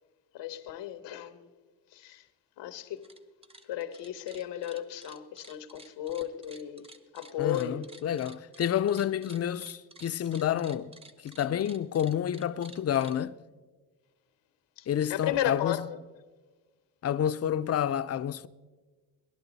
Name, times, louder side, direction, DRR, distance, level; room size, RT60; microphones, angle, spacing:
voice 1, 0.3-1.5 1.9-2.2 2.6-3.0 3.7-6.9 7.1-7.9 14.8-16.0, left 11 dB, 90° left, 1.0 m, -34 dB
sound 1, 2.9-3.2 3.4-13.2, right 2 dB, 15° right, 0.7 m, -52 dB
voice 2, 7.4-10.9 11.2-13.3 14.9-15.9 17.0-18.5, left 10 dB, 40° left, 0.4 m, -29 dB
19.5 x 11.5 x 4.0 m
cardioid pair, 115°, 41 cm